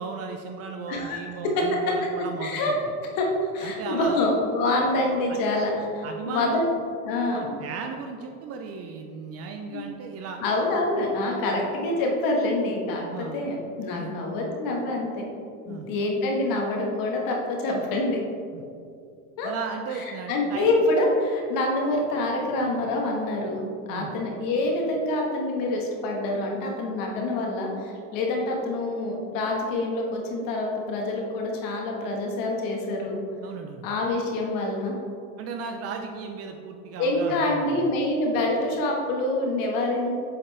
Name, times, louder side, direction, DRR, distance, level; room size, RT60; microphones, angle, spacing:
voice 1, 0.0-2.8 3.6-4.2 5.3-5.5 6.0-6.7 7.3-10.4 13.1-13.4 13.9-14.1 15.6-15.9 18.5-18.6 19.4-20.7 23.9-24.1 33.4-33.9 35.4-37.9, right 5 dB, 35° right, 4 dB, 0.5 m, -36 dB
voice 2, 0.9-1.2 1.6-1.7 2.4-2.7 3.2-3.3 3.5-6.6 7.0-7.6 9.7-9.8 10.4-15.2 15.7-18.2 19.4-19.5 20.3-33.2 33.8-35.0 37.0-40.1, left 2 dB, 50° left, 0 dB, 1.4 m, -26 dB
7.6 x 4.2 x 3.3 m, 2.4 s
hypercardioid pair, 110°, 44 cm